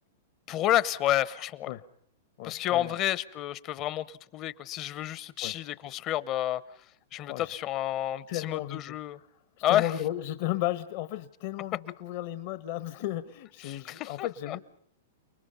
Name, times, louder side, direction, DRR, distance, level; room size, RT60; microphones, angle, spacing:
voice 1, 0.5-1.7 2.4-6.6 7.1-9.2 9.6-9.9 13.6-14.6, left 13 dB, 35° left, 18 dB, 0.9 m, -30 dB
voice 2, 2.4-2.9 5.4-5.5 7.1-7.5 8.3-9.3 9.7-14.6, left 13 dB, 55° left, 13 dB, 1.2 m, -34 dB
29.5 x 20.5 x 5.7 m, 0.67 s
hypercardioid pair, 130°, 0 cm